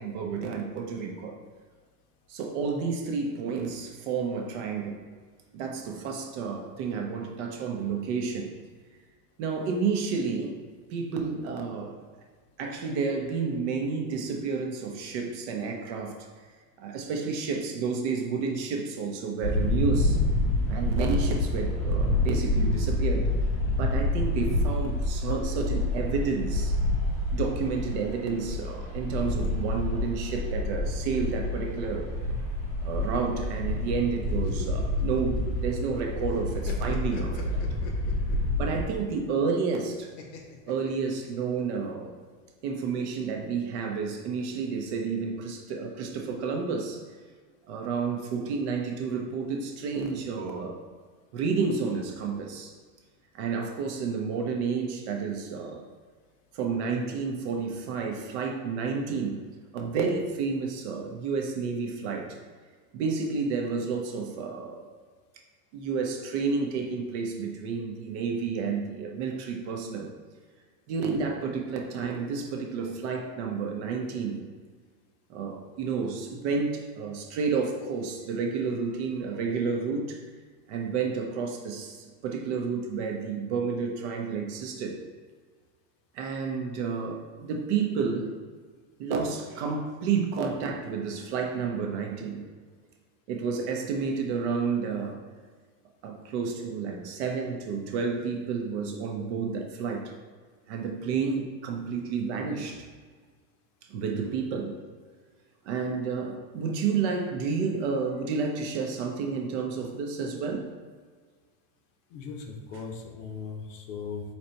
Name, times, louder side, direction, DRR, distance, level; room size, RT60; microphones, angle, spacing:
voice 1, 0.0-1.4 2.3-5.0 5.5-8.5 9.4-10.6 10.9-12.0 12.6-16.3 16.8-20.2 20.7-23.3 23.8-26.7 27.3-32.1 32.8-37.6 38.6-40.1 40.6-42.1 42.6-47.0 47.7-50.8 51.3-52.7 53.3-55.8 56.5-59.4 59.7-62.4 62.9-64.9 65.7-70.1 70.9-74.4 75.3-80.2 80.7-85.0 86.1-88.3 89.0-92.4 93.3-95.2 96.0-100.1 100.7-102.9 103.9-104.7 105.6-110.7, right 5 dB, 45° right, 2 dB, 0.6 m, -30 dB
sound 1, 19.4-38.8, left 1 dB, 15° left, 0.7 m, -28 dB
sound 2, 34.3-36.0 36.3-38.5 40.2-41.6, left 5 dB, 85° left, 1.1 m, -43 dB
voice 2, 112.1-114.2, left 5 dB, 50° left, 3 dB, 0.8 m, -38 dB
4.1 x 2.9 x 4.3 m, 1.5 s
supercardioid pair, 150°, 50 cm